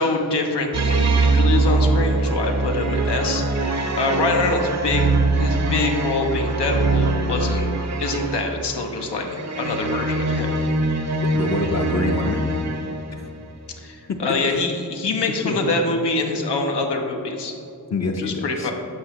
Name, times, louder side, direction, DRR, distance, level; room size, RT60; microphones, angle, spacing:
voice 1, 0.0-5.1 5.3-7.7 8.0-9.3 9.6-10.6 13.8-17.5 18.2-18.7, left 3 dB, 85° left, 2 dB, 0.9 m, -25 dB
sound 1, 0.7-13.3, right 3 dB, 40° right, 0.7 m, -22 dB
voice 2, 11.2-12.4 14.1-14.2 14.5-14.6 15.4-15.7 17.9-18.7, left 3 dB, 40° left, 3 dB, 0.6 m, -26 dB
8.1 x 5.6 x 2.9 m, 2.6 s
cardioid pair, 55°, 40 cm